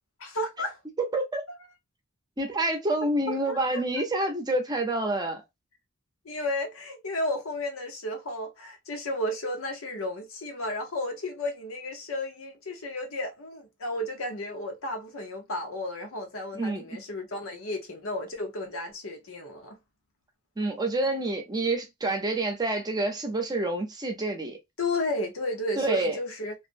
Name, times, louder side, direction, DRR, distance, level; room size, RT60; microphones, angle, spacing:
voice 1, 0.2-0.8 3.3-3.8 6.2-19.8 24.8-26.5, left 1 dB, 85° left, 0.8 m, -33 dB
voice 2, 1.1-1.4 2.4-5.4 16.5-17.0 20.6-24.6 25.8-26.2, right 2 dB, 20° right, 0.6 m, -28 dB
2.4 x 2.1 x 2.5 m
head